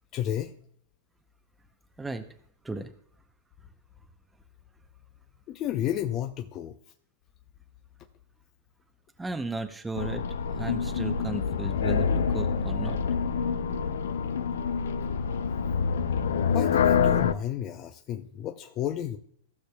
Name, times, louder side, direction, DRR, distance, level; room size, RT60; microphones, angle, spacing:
voice 1, 0.1-0.5 5.5-6.8 16.4-19.2, left 11 dB, 35° left, 5 dB, 0.6 m, -32 dB
voice 2, 9.2-10.2 10.6-13.0, right 2 dB, 10° right, 7 dB, 0.7 m, -35 dB
sound 1, 10.0-17.3, left 6 dB, 80° left, 0.5 m, -26 dB
15.5 x 6.5 x 2.3 m, 0.64 s
hypercardioid pair, 130°, 0 cm